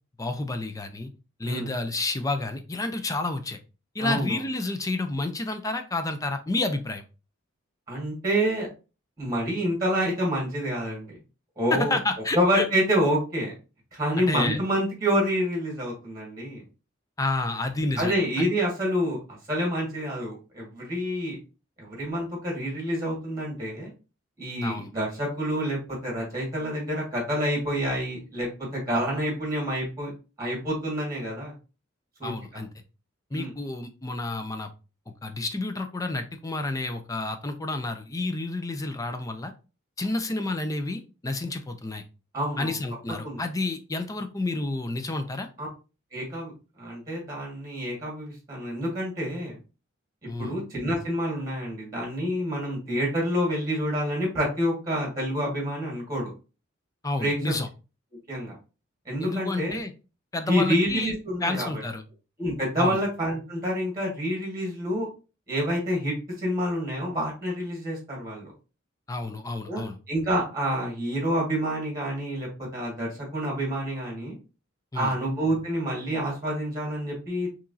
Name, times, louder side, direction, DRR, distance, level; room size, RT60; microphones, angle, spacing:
voice 1, 0.2-1.1 1.4-3.6 3.9-7.0 11.7-12.7 14.2-14.6 17.2-18.5 24.6-24.9 28.9-29.0 32.2-32.7 33.3-34.7 35.2-39.5 40.0-42.0 42.6-45.5 50.3-50.5 57.0-57.7 59.2-59.9 60.3-62.0 62.8-63.0 69.1-70.0 74.9-75.1, left 2 dB, 15° left, 7 dB, 0.4 m, -30 dB
voice 2, 4.0-4.4 7.9-8.7 9.2-11.2 11.6-12.0 12.3-13.5 13.9-16.6 18.0-21.4 21.8-23.9 24.4-30.1 30.4-31.5 32.2-32.6 33.3-33.5 42.3-42.7 43.2-43.4 45.6-45.7 46.1-46.5 46.8-49.6 50.2-56.3 57.2-57.5 58.3-58.5 59.0-59.8 60.5-61.8 62.4-65.1 65.5-68.5 69.7-74.4 74.9-77.5, equal, 15° right, -2 dB, 1.7 m, -28 dB
4.6 x 3.0 x 2.7 m, 0.32 s
head